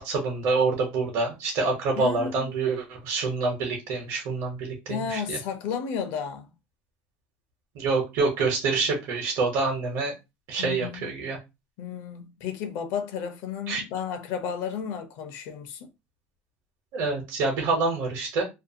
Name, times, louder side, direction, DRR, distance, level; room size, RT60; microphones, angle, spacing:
voice 1, 0.0-5.4 7.7-10.1 10.5-11.4 13.7-13.8 16.9-18.4, right 3 dB, 70° right, 1.0 m, -26 dB
voice 2, 2.0-2.5 4.9-6.5 10.6-11.1 11.8-15.9, left 7 dB, 70° left, 0.6 m, -33 dB
2.6 x 2.3 x 2.7 m
cardioid pair, 135°, 5 cm